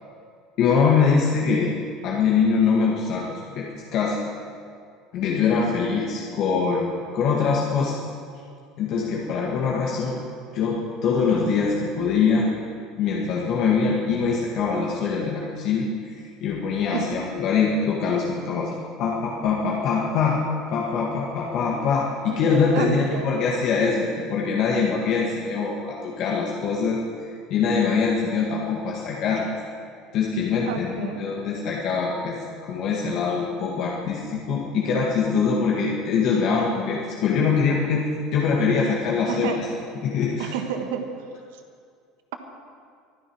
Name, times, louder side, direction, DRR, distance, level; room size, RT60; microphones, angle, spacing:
voice 1, 0.6-1.8 2.0-3.7 3.9-4.2 5.1-8.0 8.8-10.2 10.5-12.5 13.0-20.4 20.7-27.0 27.5-29.5 30.1-32.4 32.7-39.7 40.0-40.5, left 5 dB, 55° left, -2 dB, 1.8 m, -23 dB
voice 2, 5.6-6.1 16.9-17.2 22.3-22.4 22.7-23.4 30.7-31.2 39.3-39.6 40.4-41.0, right 8 dB, 70° right, 6 dB, 1.4 m, -31 dB
25.0 x 10.0 x 4.7 m, 2.2 s
hypercardioid pair, 75°, 0 cm